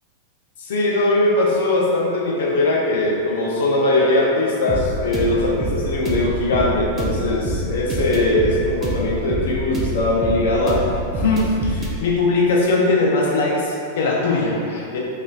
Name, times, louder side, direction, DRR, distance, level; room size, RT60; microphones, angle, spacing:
voice 1, 0.6-15.0, left 2 dB, 60° left, -3 dB, 0.4 m, -20 dB
sound 1, 4.7-11.9, right 1 dB, 25° right, 0.4 m, -26 dB
3.0 x 2.4 x 2.3 m, 2.5 s
figure-of-eight pair, 90°, 0 cm